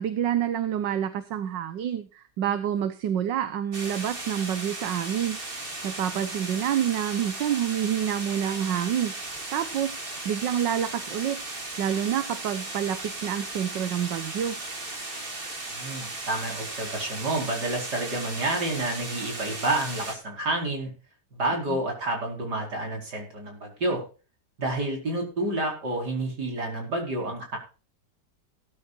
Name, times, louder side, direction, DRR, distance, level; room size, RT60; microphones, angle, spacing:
voice 1, 0.0-9.1 9.5-11.4 11.8-14.5 21.7-21.8, right 9 dB, 85° right, 11 dB, 1.7 m, -28 dB
sound 1, 3.7-20.2, right 2 dB, 30° right, 2.3 m, -36 dB
voice 2, 15.7-20.9 21.3-24.0 24.6-27.6, right 2 dB, 65° right, 1 dB, 5.4 m, -29 dB
17.0 x 12.5 x 2.5 m, 0.34 s
omnidirectional pair, 1.9 m